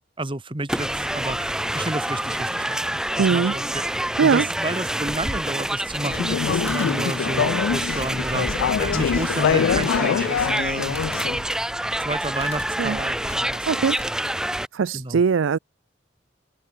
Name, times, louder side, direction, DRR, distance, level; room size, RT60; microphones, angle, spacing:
voice 1, 0.2-3.8 4.2-11.0 12.0-13.7 14.9-15.2, right 2 dB, 25° right, 1.6 m, -31 dB
sound 1, 0.7-14.7, right 1 dB, 5° right, 0.4 m, -27 dB
voice 2, 3.2-3.5 4.2-4.4 12.8-13.0 13.7-14.0 14.7-15.6, right 5 dB, 85° right, 0.4 m, -20 dB
sound 2, 5.7-6.4 6.7-7.0 9.7-10.2 10.9-11.3 12.4-12.7 13.3-14.1, left 6 dB, 30° left, 2.3 m, -43 dB
Conversation / Chatter, 6.0-11.4, left 7 dB, 85° left, 0.3 m, -24 dB
head